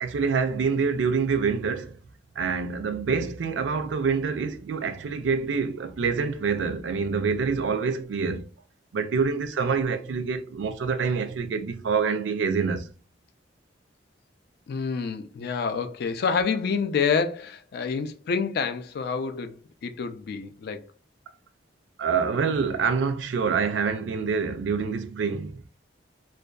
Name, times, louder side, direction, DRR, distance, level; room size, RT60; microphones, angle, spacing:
voice 1, 0.0-1.9 2.4-8.5 8.9-12.9 22.0-25.6, right 5 dB, 85° right, 0.4 m, -26 dB
voice 2, 14.7-20.8, left 5 dB, 60° left, 0.3 m, -28 dB
2.6 x 2.2 x 2.2 m
head